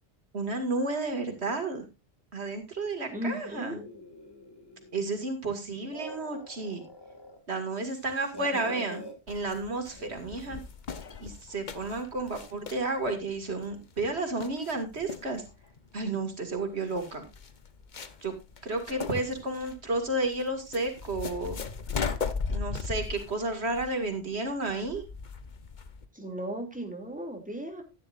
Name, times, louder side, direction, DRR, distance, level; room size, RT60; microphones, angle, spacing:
voice 1, 0.3-1.8 2.3-3.8 4.9-6.8 7.5-10.6 11.2-15.4 15.9-17.2 18.2-18.3 18.6-21.6 22.5-25.0, right 2 dB, 90° right, 5 dB, 2.6 m, -32 dB
voice 2, 3.1-3.8 26.1-27.8, right 1 dB, 5° right, 2 dB, 2.8 m, -36 dB
sound 1, 3.5-5.3 5.7-7.4 7.7-9.1 9.9-10.7, left 1 dB, 20° left, 2.3 m, -45 dB
sound 2, 9.3-26.1, left 5 dB, 50° left, 1.1 m, -38 dB
14.0 x 10.5 x 2.6 m, 0.25 s
omnidirectional pair, 1.1 m